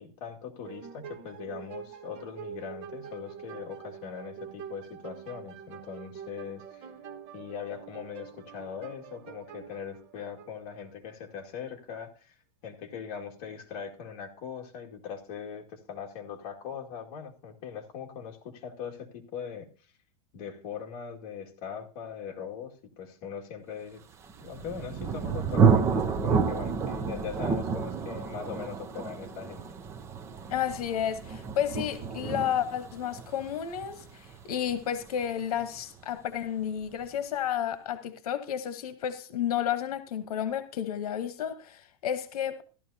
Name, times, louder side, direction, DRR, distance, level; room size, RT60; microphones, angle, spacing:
voice 1, 0.0-6.9 7.3-19.9 20.3-24.0 24.4-29.7, left 7 dB, 45° left, 2.1 m, -40 dB
sound 1, 0.6-11.1, right 8 dB, 30° right, 1.0 m, -45 dB
Thunder, 24.2-35.8, right 5 dB, 15° right, 0.6 m, -29 dB
voice 2, 30.5-42.6, left 9 dB, 85° left, 1.1 m, -31 dB
14.0 x 12.0 x 2.8 m
supercardioid pair, 165°, 19 cm